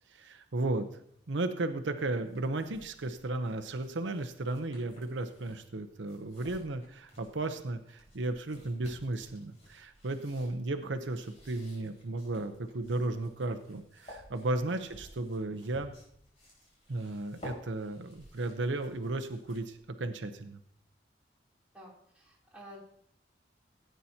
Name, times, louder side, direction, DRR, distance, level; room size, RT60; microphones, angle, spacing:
voice 1, 0.1-0.9 1.3-15.9 16.9-20.6, right 2 dB, 85° right, 7 dB, 0.8 m, -34 dB
sound 1, 2.1-19.9, equal, 35° left, 4.7 m, -55 dB
voice 2, 21.7-22.8, equal, 5° right, -6 dB, 3.2 m, -52 dB
17.0 x 9.1 x 2.8 m, 0.69 s
head